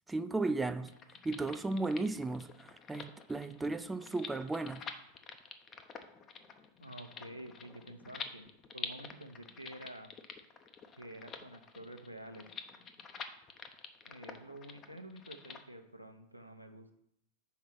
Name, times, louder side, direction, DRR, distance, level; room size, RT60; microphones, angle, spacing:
voice 1, 0.1-0.9 1.2-4.8, right 3 dB, 10° right, 0.3 m, -35 dB
sound 1, 0.8-15.6, left 6 dB, 30° left, 0.6 m, -48 dB
voice 2, 6.8-8.5 8.7-10.1 11.0-12.4 14.0-16.9, right 1 dB, 90° right, 0.7 m, -49 dB
5.7 x 4.5 x 6.2 m
figure-of-eight pair, 90°, 0 cm